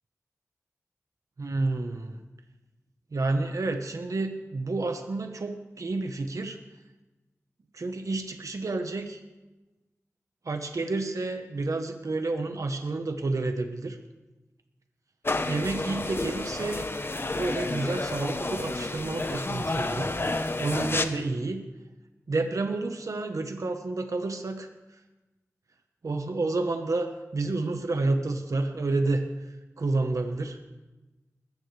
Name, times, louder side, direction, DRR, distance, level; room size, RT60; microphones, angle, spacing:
voice 1, 1.4-2.2 3.1-6.6 7.7-9.2 10.4-14.0 15.5-16.9 17.3-20.1 20.6-21.6 22.3-24.7 26.0-30.6, right 2 dB, 75° right, 6 dB, 1.2 m, -30 dB
sound 1, 15.2-21.0, left 2 dB, 45° left, 1.0 m, -30 dB
20.0 x 15.0 x 3.4 m, 1.1 s
wide cardioid pair, 65°, 6 cm